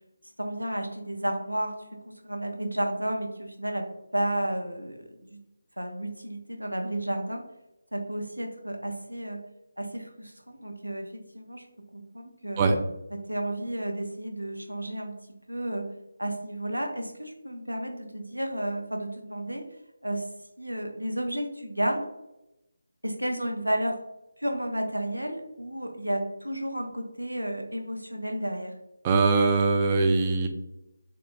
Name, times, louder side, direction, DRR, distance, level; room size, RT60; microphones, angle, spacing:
voice 1, 0.4-1.8 2.0-3.9 4.1-5.4 5.8-7.4 7.9-9.4 9.8-11.6 11.9-12.6 13.1-15.1 15.5-15.9 16.2-19.6 20.0-20.3 20.6-22.1 23.0-24.0 24.4-28.7, right 1 dB, 90° right, 3 dB, 0.5 m, -32 dB
voice 2, 29.0-30.5, right 3 dB, 20° right, 3 dB, 0.3 m, -22 dB
3.7 x 2.3 x 2.4 m, 0.93 s
figure-of-eight pair, 155°, 0 cm